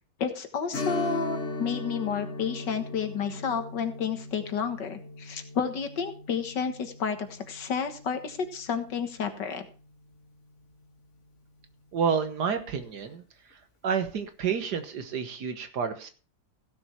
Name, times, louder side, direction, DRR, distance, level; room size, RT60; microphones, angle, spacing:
voice 1, 0.2-9.7, left 6 dB, 70° left, 8 dB, 2.1 m, -31 dB
Strum, 0.7-9.9 10.2-10.3 12.9-13.1 13.5-13.6, left 2 dB, 40° left, 2.2 m, -38 dB
voice 2, 11.9-13.2 13.8-16.1, right 6 dB, 65° right, 8 dB, 1.8 m, -29 dB
16.0 x 7.0 x 4.5 m, 0.37 s
omnidirectional pair, 2.0 m